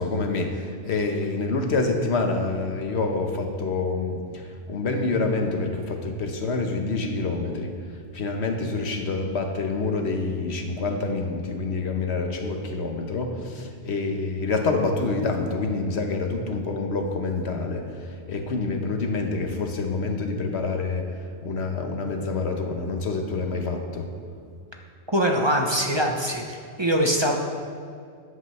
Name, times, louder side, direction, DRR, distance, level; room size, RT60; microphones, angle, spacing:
voice 1, 0.0-7.7 8.1-17.9 18.3-21.1 21.4-24.1, left 3 dB, 75° left, 4 dB, 1.3 m, -27 dB
voice 2, 25.1-27.3, equal, 25° right, 1 dB, 0.8 m, -23 dB
13.5 x 9.9 x 3.2 m, 2.3 s
omnidirectional pair, 1.1 m